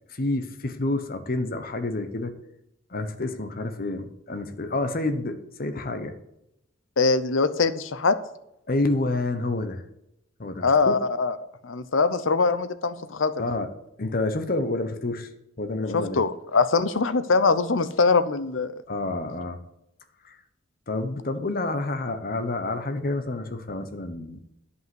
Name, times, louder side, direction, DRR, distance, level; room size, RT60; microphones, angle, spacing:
voice 1, 0.1-2.3 2.9-6.1 8.7-9.8 10.4-10.9 13.4-13.7 14.0-15.3 15.6-16.2 18.9-19.6 20.2-20.4 20.9-24.4, left 2 dB, 50° left, 8 dB, 1.1 m, -28 dB
voice 2, 7.0-8.2 10.6-11.4 11.6-13.3 15.9-18.7, left 4 dB, 75° left, 13 dB, 0.8 m, -22 dB
10.5 x 5.7 x 7.7 m, 0.83 s
head